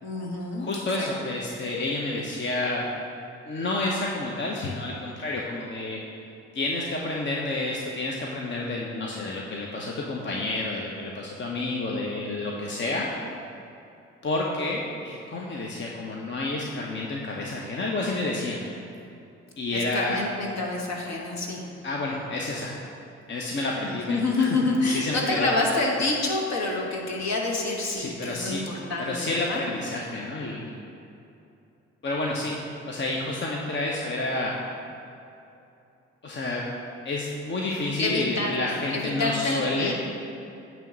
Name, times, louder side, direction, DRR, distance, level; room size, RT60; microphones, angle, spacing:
voice 1, 0.0-0.7 1.0-1.3 19.7-21.6 23.8-29.6 38.0-39.9, left 3 dB, 50° left, -1 dB, 1.4 m, -28 dB
voice 2, 0.6-2.9 3.5-6.0 6.5-13.1 14.2-18.6 19.6-20.2 21.8-22.7 23.3-24.6 24.8-25.5 27.9-28.6 29.0-30.7 32.0-34.5 36.2-36.6 37.0-39.9, left 2 dB, 35° left, -2 dB, 0.9 m, -29 dB
8.9 x 3.1 x 6.3 m, 2.7 s
hypercardioid pair, 45°, 34 cm